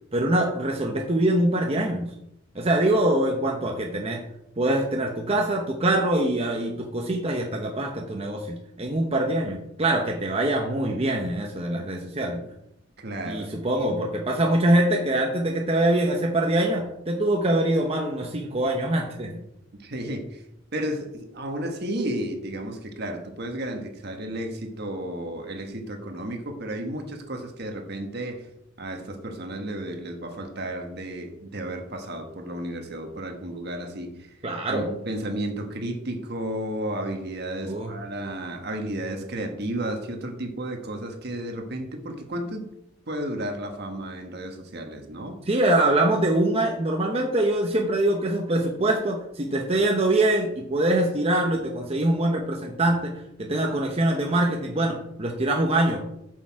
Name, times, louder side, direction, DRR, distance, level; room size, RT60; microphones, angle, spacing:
voice 1, 0.1-2.1 2.5-4.2 4.6-12.5 13.2-19.3 34.4-34.9 37.6-37.9 45.5-53.1 53.4-56.0, right 1 dB, 30° right, 1 dB, 0.9 m, -24 dB
voice 2, 13.0-13.5 13.8-14.0 19.8-20.4 20.7-28.4 28.8-34.3 34.7-42.7 43.1-45.4, right 1 dB, 55° right, 4 dB, 1.4 m, -33 dB
7.9 x 6.5 x 4.7 m, 0.80 s
head